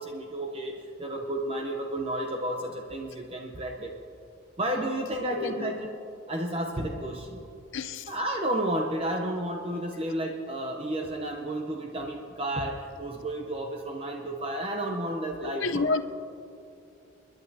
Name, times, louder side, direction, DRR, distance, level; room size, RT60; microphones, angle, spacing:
voice 1, 0.0-3.9 4.6-5.9 6.3-7.5 8.1-15.9, right 1 dB, 30° right, 2 dB, 0.7 m, -32 dB
voice 2, 5.3-5.7 7.7-8.1 15.4-16.0, left 3 dB, 75° left, 9 dB, 0.6 m, -29 dB
30.0 x 10.5 x 2.8 m, 2.7 s
head